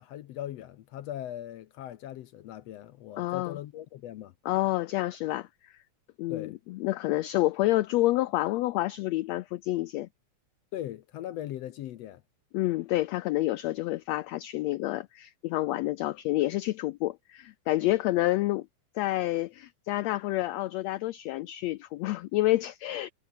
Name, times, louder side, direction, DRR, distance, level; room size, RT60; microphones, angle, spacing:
voice 1, 0.0-4.3 6.3-6.6 10.7-12.2, left 12 dB, 70° left, 1.6 m, -39 dB
voice 2, 3.2-3.6 4.4-5.7 6.2-10.1 12.5-18.7 18.9-23.1, left 17 dB, 85° left, 1.5 m, -28 dB
omnidirectional pair, 3.7 m